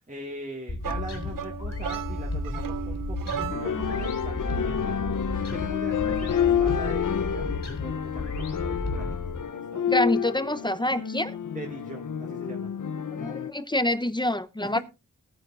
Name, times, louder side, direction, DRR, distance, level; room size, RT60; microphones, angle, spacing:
voice 1, 0.1-9.2 9.5-9.8 11.5-12.7 14.6-14.8, right 1 dB, 25° right, 0 dB, 1.8 m, -41 dB
sound 1, 0.7-9.4, left 2 dB, 55° left, 3.1 m, -33 dB
sound 2, 0.8-4.0, right 9 dB, 80° right, 0.5 m, -35 dB
sound 3, 3.5-13.5, left 8 dB, 70° left, 0.7 m, -29 dB
voice 2, 9.9-11.4 13.1-14.8, left 1 dB, 15° left, 12 dB, 0.7 m, -26 dB
19.5 x 9.6 x 2.4 m, 0.27 s
wide cardioid pair, 95°, 32 cm